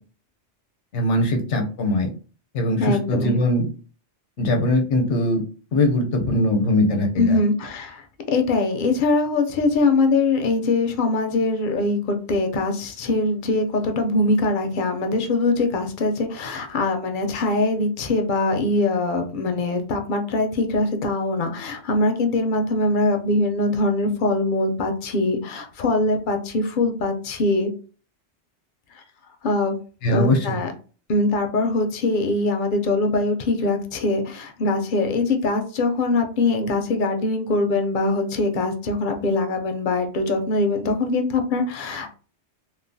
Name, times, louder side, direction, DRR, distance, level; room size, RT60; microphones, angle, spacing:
voice 1, 0.9-2.1 2.5-3.7 4.4-5.4 5.7-7.4 30.0-30.6, left 1 dB, 85° left, 3 dB, 1.0 m, -21 dB
voice 2, 2.8-3.3 6.2-6.3 7.2-27.7 29.0-29.1 29.4-29.8 30.1-30.7 31.1-42.1, left 2 dB, 60° left, 5 dB, 0.6 m, -22 dB
3.0 x 2.0 x 2.6 m, 0.38 s
omnidirectional pair, 1.2 m